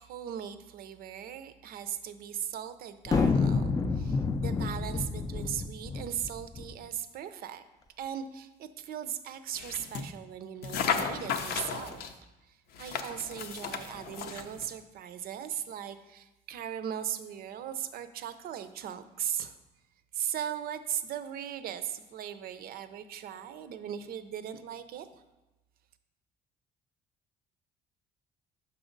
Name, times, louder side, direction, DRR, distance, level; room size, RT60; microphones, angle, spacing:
voice 1, 0.0-7.6 8.0-12.1 12.5-19.6 20.1-25.1, right 9 dB, 60° right, 11 dB, 0.5 m, -38 dB
sound 1, 3.1-6.7, left 4 dB, 20° left, 0.4 m, -28 dB
sound 2, 9.5-10.1 10.6-12.1 12.7-14.7, left 6 dB, 70° left, 0.6 m, -34 dB
6.1 x 5.6 x 3.8 m, 1.0 s
cardioid pair, 110°, 17 cm